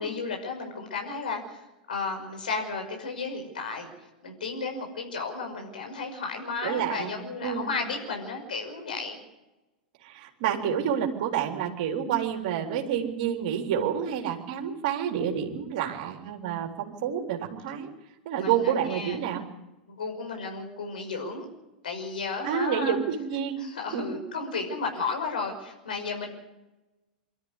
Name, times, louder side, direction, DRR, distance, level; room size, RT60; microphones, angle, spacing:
voice 1, 0.0-3.9 4.2-9.2 18.4-19.2 19.9-21.5 21.8-23.0 23.6-26.3, left 4 dB, 75° left, 2 dB, 5.7 m, -33 dB
voice 2, 6.6-7.1 7.4-7.8 10.0-17.9 18.3-19.4 22.4-23.6 23.9-24.1, right 9 dB, 55° right, 2 dB, 3.8 m, -29 dB
24.5 x 13.0 x 9.9 m, 1.0 s
figure-of-eight pair, 100°, 5 cm